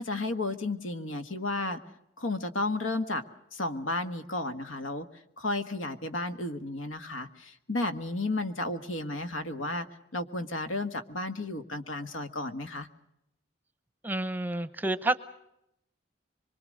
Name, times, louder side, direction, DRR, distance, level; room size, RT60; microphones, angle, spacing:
voice 1, 0.0-1.8 2.2-3.2 3.5-5.0 5.4-9.9 10.1-12.9, left 2 dB, 85° left, 10 dB, 1.5 m, -33 dB
voice 2, 14.0-15.2, right 2 dB, 10° right, 12 dB, 0.8 m, -29 dB
24.5 x 23.5 x 6.5 m, 0.81 s
head